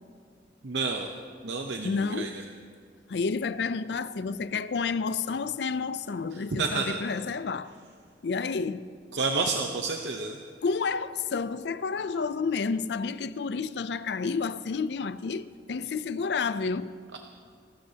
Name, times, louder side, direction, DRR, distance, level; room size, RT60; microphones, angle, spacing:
voice 1, 0.6-1.1 1.4-2.4 6.3-7.0 9.1-10.4 17.1-17.2, right 4 dB, 80° right, 0.8 m, -30 dB
voice 2, 1.8-2.4 3.1-7.7 8.2-8.9 10.6-16.9, left 5 dB, 70° left, 0.4 m, -30 dB
25.0 x 13.0 x 2.8 m
head